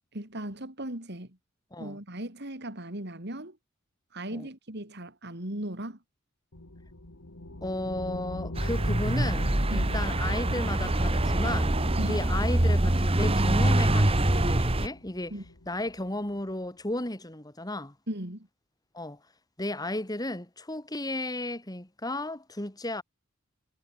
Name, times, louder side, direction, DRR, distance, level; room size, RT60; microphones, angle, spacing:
voice 1, 0.1-1.4 1.8-3.6 4.1-6.0 9.7-9.9 12.0-12.2 15.3-15.4 18.1-18.5, right 1 dB, 55° right, 4.1 m, -37 dB
sound 1, 6.5-16.5, left 1 dB, 75° left, 2.5 m, -42 dB
voice 2, 7.6-15.3 15.7-18.0 18.9-19.2 19.6-23.0, left 1 dB, 20° left, 2.3 m, -34 dB
sound 2, 8.5-14.9, right 1 dB, 30° right, 1.5 m, -24 dB
head